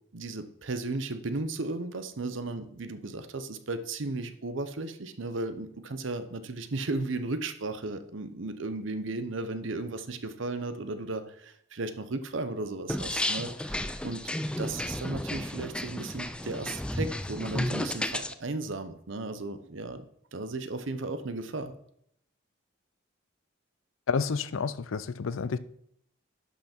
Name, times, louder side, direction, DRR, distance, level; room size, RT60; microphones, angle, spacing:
voice 1, 0.1-14.3 14.6-21.7, right 2 dB, 65° right, 0.8 m, -35 dB
sound 1, 12.9-18.3, left 1 dB, 5° left, 0.3 m, -33 dB
voice 2, 24.1-25.6, left 5 dB, 80° left, 0.5 m, -30 dB
11.5 x 5.6 x 4.4 m
head